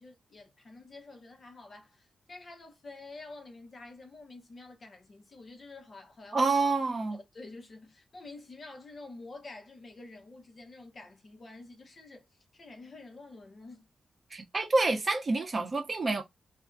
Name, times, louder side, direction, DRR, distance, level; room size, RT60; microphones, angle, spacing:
voice 1, 0.0-6.5 7.1-12.3 12.5-13.9, left 3 dB, 45° left, 0.9 m, -48 dB
voice 2, 6.3-7.2 14.3-16.2, right 3 dB, 40° right, 0.8 m, -28 dB
2.5 x 2.2 x 2.5 m
cardioid pair, 85°, 0 cm